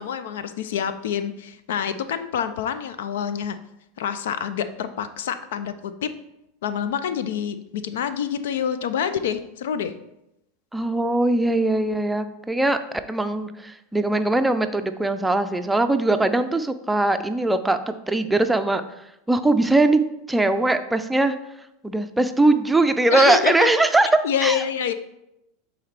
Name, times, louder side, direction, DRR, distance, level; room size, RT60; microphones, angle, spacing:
voice 1, 0.0-3.6 4.0-6.1 6.6-9.9 23.1-23.7 24.2-24.9, left 8 dB, 75° left, 12 dB, 0.4 m, -27 dB
voice 2, 10.7-12.8 13.1-18.8 19.3-20.0 20.3-21.3 21.8-24.1 24.4-24.6, right 2 dB, 10° right, 9 dB, 0.5 m, -21 dB
8.5 x 4.0 x 3.3 m, 0.85 s
hypercardioid pair, 90°, 0 cm